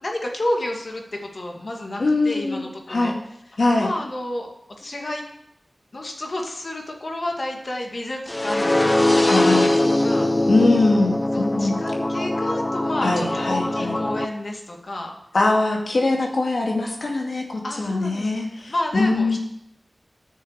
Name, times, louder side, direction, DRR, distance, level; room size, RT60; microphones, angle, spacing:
voice 1, 0.0-3.2 3.8-4.5 4.8-5.2 5.9-10.5 11.3-15.1 17.6-18.3 18.7-19.4, left 1 dB, 60° left, 1 dB, 2.3 m, -30 dB
voice 2, 2.0-3.2 3.6-3.9 9.3-9.7 10.5-11.8 13.0-14.0 15.3-19.4, left 2 dB, 75° left, 0 dB, 2.4 m, -22 dB
sound 1, 8.3-14.3, left 1 dB, 25° left, 0.8 m, -21 dB
9.9 x 6.7 x 8.2 m, 0.78 s
wide cardioid pair, 80°, 0 cm